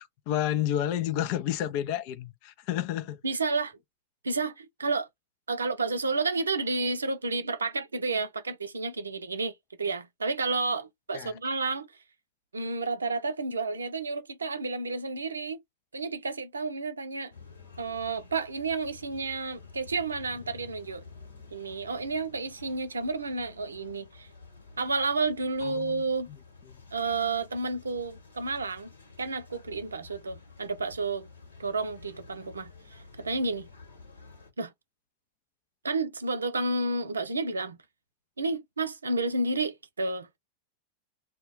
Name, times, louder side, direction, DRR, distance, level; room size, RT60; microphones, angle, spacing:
voice 1, 0.0-3.2 11.1-11.3 25.6-26.0, left 11 dB, 45° left, 0.4 m, -30 dB
voice 2, 3.2-3.8 4.2-5.1 5.5-9.5 9.8-11.9 12.5-15.6 15.9-17.3 17.8-21.0 21.5-24.3 24.8-26.3 26.9-28.9 29.2-31.3 31.6-33.7 34.6-34.7 35.8-37.8 38.4-40.4, right 3 dB, 75° right, 0.5 m, -31 dB
sound 1, 17.3-34.5, left 4 dB, 75° left, 1.2 m, -51 dB
2.3 x 2.1 x 3.7 m
figure-of-eight pair, 90°, 0 cm